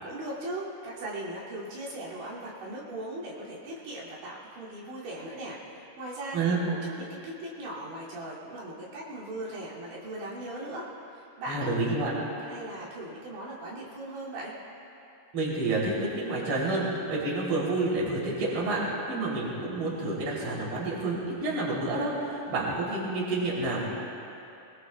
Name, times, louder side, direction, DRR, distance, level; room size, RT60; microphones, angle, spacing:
voice 1, 0.0-11.7 12.4-14.5 22.5-22.8, right 1 dB, 75° right, -7 dB, 4.9 m, -39 dB
voice 2, 11.5-12.2 15.3-23.8, right 2 dB, 30° right, -6 dB, 3.5 m, -29 dB
22.5 x 21.5 x 2.3 m, 2.7 s
omnidirectional pair, 5.3 m